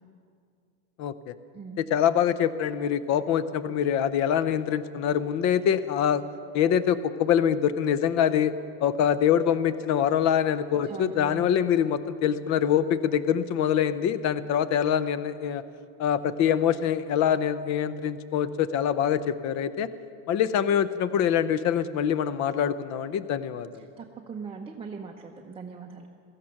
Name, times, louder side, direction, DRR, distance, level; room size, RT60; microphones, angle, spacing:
voice 1, 1.0-1.3 1.8-6.2 6.5-8.5 8.8-15.6 16.0-19.9 20.3-23.8, left 9 dB, 45° left, 14 dB, 0.8 m, -24 dB
voice 2, 10.9-11.4 24.0-26.1, right 5 dB, 15° right, 0 dB, 0.8 m, -40 dB
16.5 x 14.0 x 5.9 m, 2.3 s
supercardioid pair, 125°, 40 cm